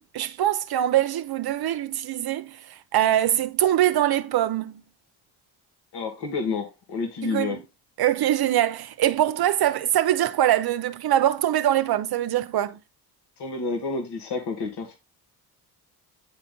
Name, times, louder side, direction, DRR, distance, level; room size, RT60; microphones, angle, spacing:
voice 1, 0.0-2.6 2.9-4.8 7.2-7.6 8.0-12.8, right 12 dB, 60° right, 0.7 m, -23 dB
voice 2, 5.9-7.6 13.4-15.0, left 4 dB, 70° left, 2.1 m, -29 dB
9.5 x 4.1 x 3.8 m
cardioid pair, 75°, 42 cm